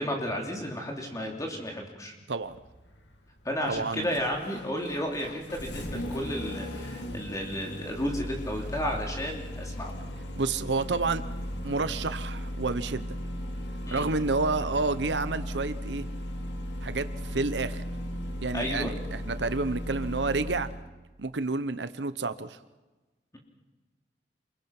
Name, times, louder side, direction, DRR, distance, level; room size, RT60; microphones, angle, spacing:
voice 1, 0.0-2.1 3.4-9.9 13.9-14.1 18.5-18.9, equal, 20° left, 1 dB, 3.2 m, -33 dB
Engine starting, 2.4-20.8, equal, 80° left, 2.7 m, -37 dB
voice 2, 3.7-4.1 10.4-11.2 11.6-13.2 13.9-16.1 16.8-17.8 18.4-20.7 21.2-22.6, right 3 dB, 90° right, 12 dB, 1.0 m, -29 dB
28.0 x 22.0 x 6.0 m, 1.2 s
head